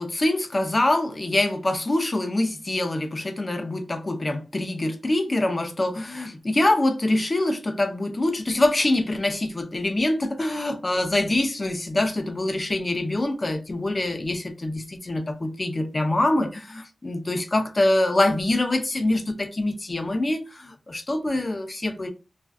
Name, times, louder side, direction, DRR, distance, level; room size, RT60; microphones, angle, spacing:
voice 1, 0.0-22.1, left 1 dB, 35° left, 0.4 m, -24 dB
2.4 x 2.3 x 2.3 m
cardioid pair, 65°, 0 cm